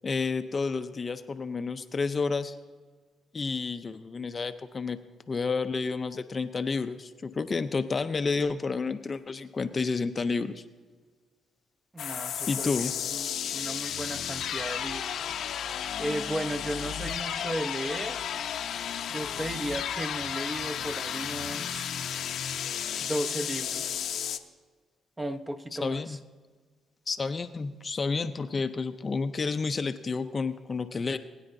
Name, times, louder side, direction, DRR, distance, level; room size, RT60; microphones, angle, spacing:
voice 1, 0.0-2.6 3.3-5.0 5.3-10.6 12.5-12.9 25.7-26.2 27.1-31.2, left 4 dB, 35° left, 9 dB, 0.5 m, -30 dB
voice 2, 11.9-13.3 13.5-15.2 16.0-18.2 19.1-21.9 23.0-24.0 25.2-26.2, right 1 dB, 15° right, 6 dB, 0.9 m, -35 dB
sound 1, 12.0-24.4, left 9 dB, 70° left, 0.7 m, -33 dB
21.0 x 9.8 x 2.7 m, 1.5 s
cardioid pair, 90°, 0 cm